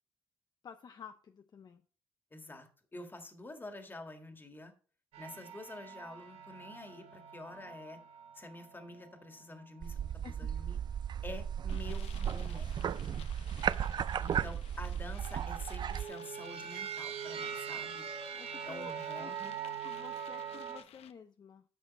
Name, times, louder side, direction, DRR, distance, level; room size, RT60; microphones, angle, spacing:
voice 1, 0.6-1.8 10.2-10.5 18.3-19.3 19.6-21.6, left 7 dB, 45° left, 7 dB, 0.6 m, -51 dB
voice 2, 2.3-4.7 5.2-8.0 8.3-10.8 11.2-13.2 14.2-18.0 18.6-19.5, left 2 dB, 20° left, 6 dB, 1.7 m, -48 dB
sound 1, 5.1-10.6 11.2-12.2 13.4-14.0 15.1-20.8, right 8 dB, 80° right, 1.1 m, -44 dB
sound 2, 9.8-16.1, right 8 dB, 45° right, 0.4 m, -35 dB
sound 3, 11.7-21.1, left 10 dB, 80° left, 0.7 m, -56 dB
10.0 x 6.3 x 4.1 m, 0.40 s
cardioid pair, 115°, 10 cm